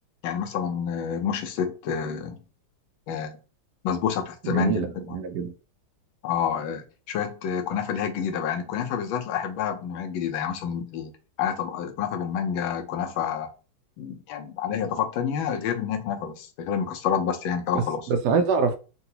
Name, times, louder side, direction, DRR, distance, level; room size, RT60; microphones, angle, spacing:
voice 1, 0.2-2.4 3.1-3.4 3.8-5.2 6.2-11.1 11.4-13.5 14.0-18.0, left 7 dB, 80° left, 1.4 m, -28 dB
voice 2, 4.4-5.5 17.7-18.8, right 5 dB, 70° right, 1.0 m, -25 dB
3.9 x 2.2 x 2.7 m
omnidirectional pair, 2.2 m